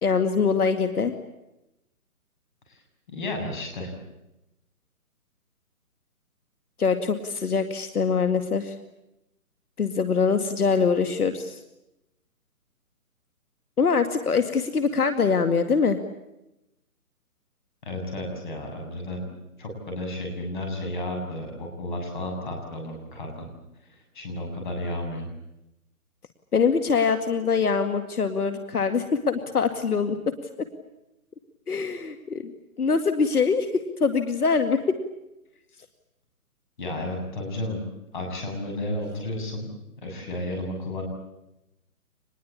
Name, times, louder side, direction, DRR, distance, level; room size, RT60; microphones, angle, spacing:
voice 1, 0.0-1.1 6.8-8.8 9.8-11.6 13.8-16.0 26.5-30.2 31.7-32.5 32.8-35.0, left 5 dB, 75° left, 8 dB, 2.3 m, -23 dB
voice 2, 3.1-3.9 17.8-19.2 19.6-23.4 23.9-25.3 36.8-37.8 38.1-39.7 40.0-41.0, left 1 dB, 30° left, 2 dB, 7.4 m, -32 dB
26.0 x 21.0 x 8.6 m, 0.90 s
hypercardioid pair, 175°, 45 cm